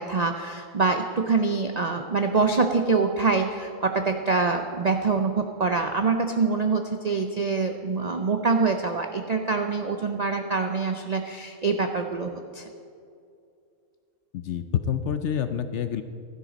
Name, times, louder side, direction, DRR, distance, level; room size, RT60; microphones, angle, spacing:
voice 1, 0.0-12.7, right 4 dB, 55° right, 5 dB, 0.4 m, -25 dB
voice 2, 14.3-16.0, left 8 dB, 65° left, 9 dB, 0.8 m, -27 dB
15.0 x 12.5 x 4.0 m, 2.5 s
omnidirectional pair, 1.5 m